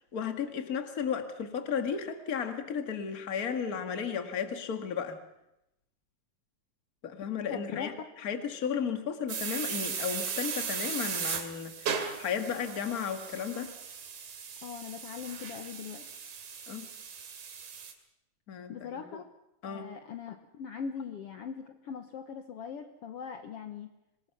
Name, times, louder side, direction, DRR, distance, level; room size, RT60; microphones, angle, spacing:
voice 1, 0.1-5.2 7.0-7.9 8.2-13.7 16.7-16.9 18.5-19.0 19.6-19.9, left 7 dB, 35° left, 7 dB, 1.9 m, -34 dB
voice 2, 7.5-7.9 14.6-16.1 18.7-19.2 19.7-23.9, left 7 dB, 60° left, 6 dB, 1.9 m, -40 dB
sound 1, 9.3-17.9, right 6 dB, 75° right, 3.7 m, -37 dB
26.5 x 20.0 x 6.0 m, 0.86 s
omnidirectional pair, 3.5 m